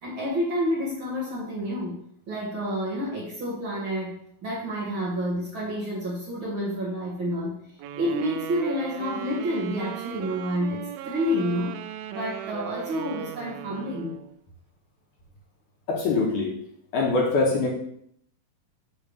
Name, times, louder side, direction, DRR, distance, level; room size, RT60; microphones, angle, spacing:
voice 1, 0.0-2.0 2.3-4.2 4.4-7.5 8.0-11.7 12.1-14.2, equal, 40° right, -6 dB, 2.5 m, -29 dB
sound 1, 7.8-14.3, right 11 dB, 80° right, 2.3 m, -38 dB
voice 2, 15.9-16.5 16.9-17.7, left 3 dB, 65° left, -1 dB, 2.4 m, -23 dB
7.0 x 4.3 x 6.5 m, 0.68 s
omnidirectional pair, 4.2 m